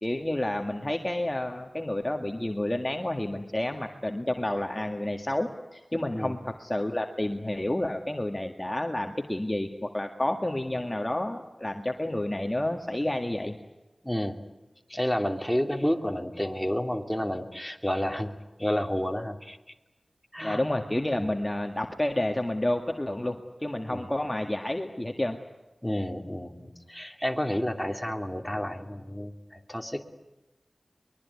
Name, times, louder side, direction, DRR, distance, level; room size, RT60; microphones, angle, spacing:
voice 1, 0.0-13.6 20.4-25.4, left 1 dB, 20° left, 4 dB, 1.9 m, -30 dB
voice 2, 14.0-14.4 14.9-18.3 18.6-19.6 20.3-20.6 21.2-21.3 23.9-24.1 25.8-30.0, equal, 5° left, 4 dB, 2.9 m, -30 dB
23.5 x 22.0 x 9.7 m, 1.0 s
wide cardioid pair, 60°, 0 cm